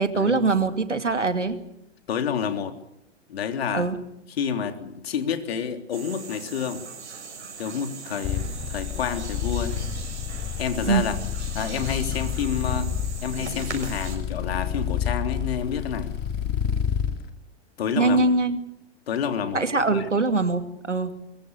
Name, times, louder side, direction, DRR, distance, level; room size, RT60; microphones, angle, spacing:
voice 1, 0.0-1.6 3.7-4.0 10.8-11.0 17.9-18.6 19.5-21.1, right 3 dB, 80° right, 9 dB, 2.6 m, -22 dB
voice 2, 2.1-2.8 3.3-3.9 4.4-6.8 7.6-9.8 10.6-11.1 11.5-12.9 13.2-16.2 17.8-18.3 19.1-19.7 19.9-20.1, left 7 dB, 55° left, 7 dB, 3.4 m, -29 dB
sound 1, 5.9-14.2, right 5 dB, 65° right, 6.6 m, -39 dB
sound 2, 8.2-17.1, left 8 dB, 30° left, 3.5 m, -29 dB
23.5 x 23.0 x 6.8 m, 0.79 s
figure-of-eight pair, 105°, 36 cm